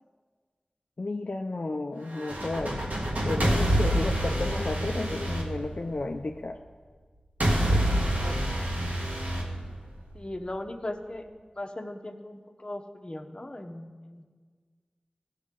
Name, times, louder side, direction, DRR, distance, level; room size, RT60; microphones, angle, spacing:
voice 1, 1.0-2.9 3.2-6.6 7.7-7.9, left 2 dB, 60° left, 3 dB, 0.5 m, -32 dB
sound 1, 2.1-6.3 7.4-10.3, right 1 dB, 80° right, 2.0 m, -27 dB
voice 2, 8.0-8.4 10.1-11.2 11.5-14.2, left 1 dB, 35° left, 5 dB, 1.0 m, -38 dB
15.5 x 6.5 x 3.7 m, 1.6 s
wide cardioid pair, 45°, 3 cm